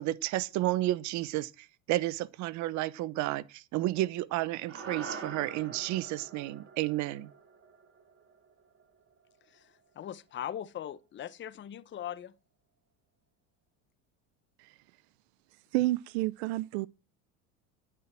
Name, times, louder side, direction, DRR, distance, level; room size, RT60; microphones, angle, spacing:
voice 1, 0.0-7.3, right 16 dB, 60° right, 0.9 m, -32 dB
sound 1, 4.7-9.1, right 5 dB, 40° right, 3.9 m, -45 dB
voice 2, 9.5-12.3, left 10 dB, 35° left, 0.9 m, -40 dB
voice 3, 15.7-16.9, right 18 dB, 80° right, 0.6 m, -29 dB
10.0 x 9.6 x 6.1 m
supercardioid pair, 100°, 32 cm